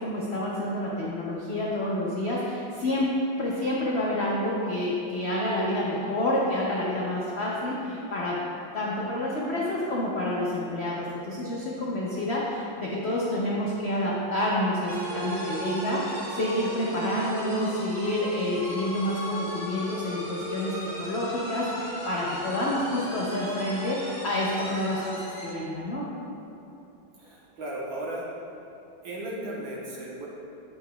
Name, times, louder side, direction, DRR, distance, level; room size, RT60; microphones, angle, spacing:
voice 1, 0.0-3.1 3.4-8.4 8.7-26.0, left 1 dB, 80° left, -5 dB, 0.5 m, -28 dB
sound 1, 14.9-25.6, equal, 45° right, 1.8 m, -36 dB
voice 2, 27.2-28.3 29.0-30.3, right 1 dB, 85° right, -5 dB, 1.9 m, -35 dB
8.6 x 5.5 x 2.3 m, 2.8 s
omnidirectional pair, 2.1 m